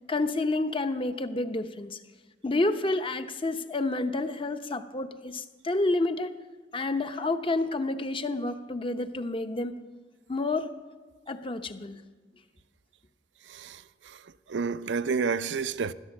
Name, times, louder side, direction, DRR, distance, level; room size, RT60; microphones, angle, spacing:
voice 1, 0.1-2.0 2.4-6.3 6.7-9.8 10.3-10.7 11.3-12.0, left 2 dB, 30° left, 0.8 m, -29 dB
voice 2, 13.4-15.9, right 5 dB, 80° right, 0.5 m, -31 dB
16.5 x 12.5 x 7.1 m
head